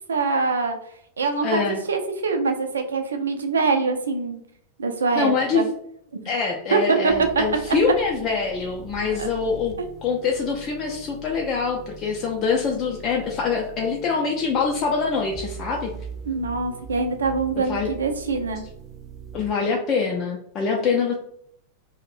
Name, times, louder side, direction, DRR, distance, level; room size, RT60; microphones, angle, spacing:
voice 1, 0.1-0.8 1.2-1.6 1.9-4.4 4.8-5.6 6.7-7.1 7.7-7.8 9.2-9.3 16.3-18.6, right 4 dB, 70° right, 6 dB, 0.4 m, -24 dB
voice 2, 1.4-1.8 5.2-5.7 6.2-9.7 10.0-15.9 17.7-17.9 19.3-21.1, left 5 dB, 30° left, 0 dB, 0.4 m, -24 dB
sound 1, 7.1-19.5, right 4 dB, 20° right, 0.5 m, -41 dB
2.5 x 2.0 x 3.1 m, 0.68 s
figure-of-eight pair, 90°, 0 cm